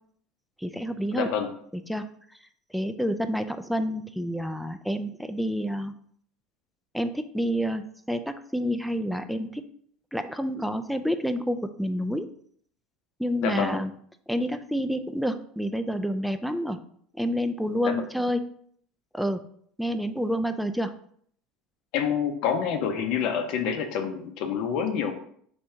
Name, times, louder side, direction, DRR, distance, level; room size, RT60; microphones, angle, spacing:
voice 1, 0.6-1.3 1.7-2.0 2.7-5.9 6.9-9.7 10.1-12.3 13.2-13.9 14.3-16.8 17.1-18.4 19.1-19.4 19.8-20.9, equal, ahead, 9 dB, 0.4 m, -28 dB
voice 2, 1.1-1.5 13.4-13.8 17.8-18.0 21.9-25.1, left 7 dB, 65° left, 5 dB, 0.6 m, -27 dB
3.5 x 2.7 x 4.3 m, 0.63 s
hypercardioid pair, 90°, 0 cm